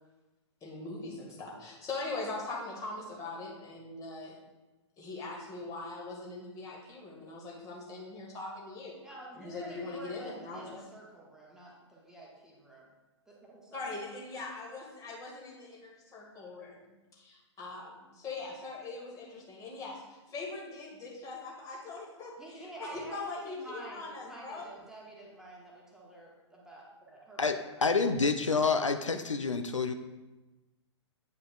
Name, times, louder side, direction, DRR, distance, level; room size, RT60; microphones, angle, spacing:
voice 1, 0.6-4.4 5.0-9.0 9.3-10.9 13.7-24.7, left 3 dB, 20° left, -3 dB, 1.7 m, -41 dB
voice 2, 9.0-12.9 13.3-14.0 22.4-27.9, right 1 dB, 5° right, -4 dB, 1.3 m, -49 dB
voice 3, 27.4-29.9, left 4 dB, 90° left, 8 dB, 0.4 m, -28 dB
9.2 x 5.0 x 2.4 m, 1.1 s
figure-of-eight pair, 110°, 16 cm